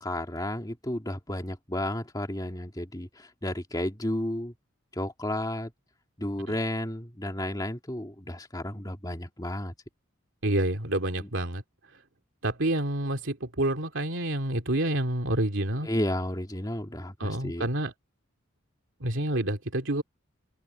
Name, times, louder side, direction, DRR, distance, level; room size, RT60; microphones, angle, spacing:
voice 1, 0.0-4.5 4.9-5.7 6.2-9.7 11.2-11.3 15.8-17.7, left 1 dB, 20° left, 2.4 m, -32 dB
voice 2, 10.4-11.6 12.4-15.9 17.2-17.9 19.0-20.0, right 1 dB, 65° right, 2.6 m, -28 dB
head